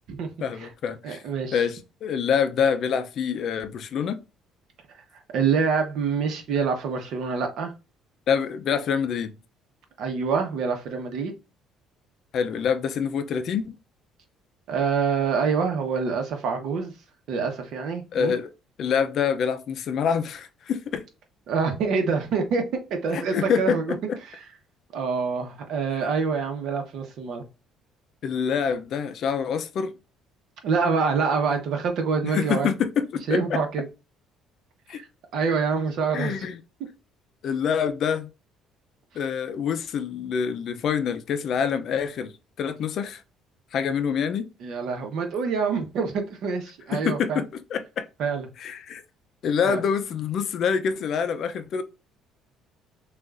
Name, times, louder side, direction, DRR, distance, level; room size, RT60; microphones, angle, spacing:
voice 1, 0.4-1.2 1.5-4.2 8.3-9.4 12.3-13.7 18.1-18.5 18.8-21.1 23.1-24.2 28.2-29.9 32.2-33.6 34.9-35.0 36.1-36.6 37.4-38.3 39.1-42.3 42.6-43.2 43.7-44.5 46.9-48.1 48.6-49.0 49.4-51.8, left 7 dB, 55° left, 0.5 m, -26 dB
voice 2, 1.0-1.6 5.1-7.7 10.0-11.3 14.7-16.9 17.3-18.3 21.5-22.6 22.9-23.9 24.9-27.4 30.6-32.7 33.3-33.8 34.9-35.1 35.3-36.3 44.6-47.4 48.2-48.5 49.7-49.8, right 5 dB, 65° right, 1.2 m, -26 dB
6.1 x 2.5 x 2.5 m
cardioid pair, 120°, 0 cm